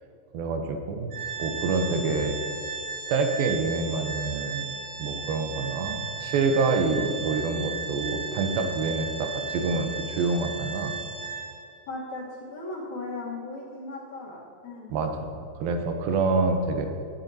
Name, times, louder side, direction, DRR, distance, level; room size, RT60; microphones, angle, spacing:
voice 1, 0.3-1.1 1.4-2.4 3.1-4.7 5.0-11.0 14.9-16.9, right 3 dB, 85° right, 5 dB, 2.7 m, -27 dB
Organ, 1.1-11.8, right 5 dB, 70° right, 3.2 m, -35 dB
voice 2, 11.9-14.9, left 2 dB, 60° left, -4 dB, 2.6 m, -37 dB
16.5 x 9.0 x 2.8 m, 2.5 s
omnidirectional pair, 4.1 m